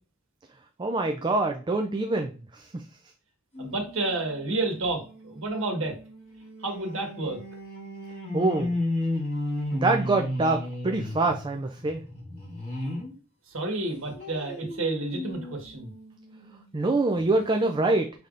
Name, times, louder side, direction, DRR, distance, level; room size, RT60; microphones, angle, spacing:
voice 1, 0.8-2.8 8.3-8.7 9.7-12.0 16.7-18.1, right 2 dB, 20° right, 4 dB, 0.4 m, -25 dB
sound 1, 3.5-13.1 13.6-16.6 17.2-17.3 17.5-17.6, left 1 dB, 30° left, 2.2 m, -35 dB
voice 2, 3.6-5.9 6.6-7.4 13.5-15.9, right 2 dB, 80° right, 2 dB, 1.4 m, -30 dB
5.7 x 3.4 x 2.5 m, 0.36 s
head